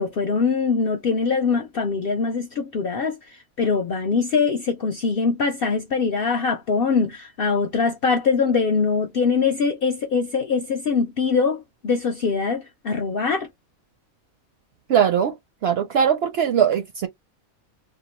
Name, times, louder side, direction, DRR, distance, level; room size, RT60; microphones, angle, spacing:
voice 1, 0.0-3.2 3.6-13.5, left 5 dB, 65° left, 0.5 m, -22 dB
voice 2, 14.9-15.3 15.6-17.1, right 8 dB, 65° right, 0.6 m, -20 dB
2.8 x 2.1 x 2.9 m
omnidirectional pair, 1.4 m